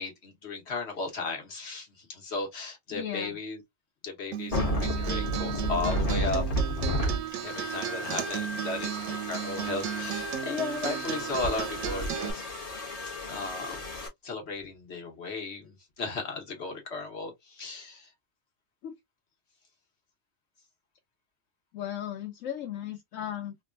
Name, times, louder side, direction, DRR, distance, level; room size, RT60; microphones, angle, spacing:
voice 1, 0.0-3.6 4.0-6.4 7.4-12.4 13.3-13.9 14.2-18.1, left 3 dB, 55° left, 1.5 m, -35 dB
voice 2, 2.9-3.3 18.8-19.0 21.7-23.6, left 10 dB, 80° left, 1.0 m, -36 dB
Acoustic guitar, 4.3-12.3, right 10 dB, 85° right, 1.0 m, -35 dB
sound 1, 4.5-14.1, equal, 30° left, 1.0 m, -33 dB
3.5 x 2.3 x 2.4 m
omnidirectional pair, 1.3 m